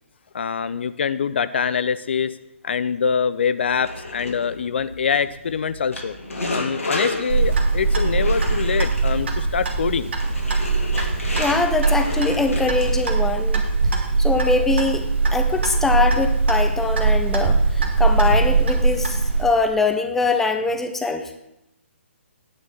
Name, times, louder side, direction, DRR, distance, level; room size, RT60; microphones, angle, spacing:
voice 1, 0.3-2.3 2.6-6.1 6.5-10.1, left 6 dB, 55° left, 14 dB, 0.4 m, -24 dB
sound 1, 3.6-13.3, left 2 dB, 80° left, 2.0 m, -32 dB
Clock, 7.3-19.4, right 3 dB, 55° right, 1.7 m, -21 dB
voice 2, 11.4-13.7 14.2-21.3, left 3 dB, 5° left, 6 dB, 0.5 m, -23 dB
9.6 x 4.0 x 6.9 m, 0.88 s
figure-of-eight pair, 135°, 7 cm